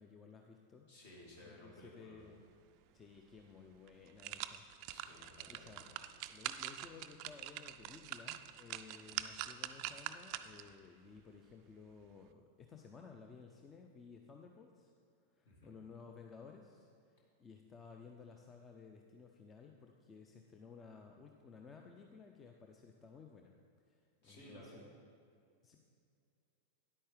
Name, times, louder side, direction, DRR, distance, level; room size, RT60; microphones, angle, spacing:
voice 1, 0.0-0.9 1.4-2.4 2.9-4.7 5.0-14.9 15.3-23.5 23.9-24.9 25.6-25.8, left 5 dB, 20° left, 3 dB, 0.5 m, -56 dB
voice 2, 0.9-2.2 4.9-5.9 15.4-15.7 24.2-24.8, left 1 dB, 55° left, -3 dB, 2.3 m, -57 dB
sound 1, 3.3-3.4 3.9-10.7 11.2-11.3, right 13 dB, 45° right, 0.3 m, -45 dB
9.8 x 8.6 x 3.5 m, 2.4 s
figure-of-eight pair, 90°, 0 cm